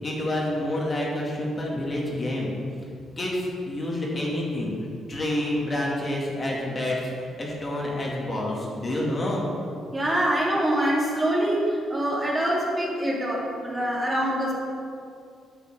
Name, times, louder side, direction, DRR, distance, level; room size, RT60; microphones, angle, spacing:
voice 1, 0.0-2.5 3.2-4.7 5.1-7.1 7.4-9.4, left 1 dB, 30° left, -3 dB, 2.0 m, -28 dB
voice 2, 9.9-14.5, right 1 dB, 20° right, -4 dB, 2.0 m, -25 dB
8.2 x 5.7 x 5.9 m, 2.4 s
cardioid pair, 90°, 0 cm